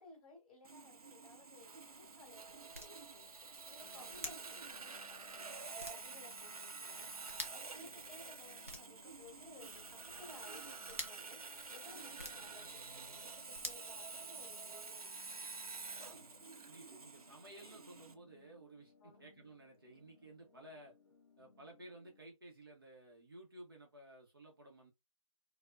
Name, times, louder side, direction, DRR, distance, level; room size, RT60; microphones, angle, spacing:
voice 1, 0.0-3.3 3.7-7.1 7.5-11.4 11.7-12.6 12.9-15.1 19.0-19.2, left 3 dB, 20° left, 2.0 m, -59 dB
Sawing, 0.6-18.1, right 4 dB, 85° right, 0.6 m, -49 dB
sound 1, 1.6-14.7, equal, 25° right, 0.4 m, -53 dB
sound 2, 3.8-22.2, left 4 dB, 45° left, 1.3 m, -67 dB
voice 2, 3.9-4.2 7.9-8.2 16.0-16.3 16.7-20.9 21.4-24.9, right 1 dB, 40° right, 0.8 m, -56 dB
4.4 x 2.1 x 2.4 m
figure-of-eight pair, 170°, 18 cm